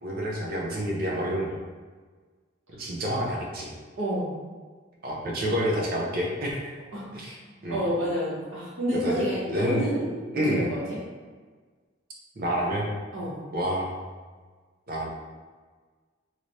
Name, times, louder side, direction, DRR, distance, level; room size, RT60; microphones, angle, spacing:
voice 1, 0.0-1.6 2.8-3.7 5.0-6.7 7.1-7.4 7.6-7.8 8.9-9.8 10.3-10.7 12.4-12.9 13.5-14.0 14.9-15.1, equal, 50° right, -2 dB, 0.7 m, -28 dB
voice 2, 3.9-4.3 6.9-7.2 7.7-11.0 13.1-13.3, equal, 85° right, -7 dB, 1.2 m, -29 dB
3.1 x 3.0 x 2.6 m, 1.5 s
head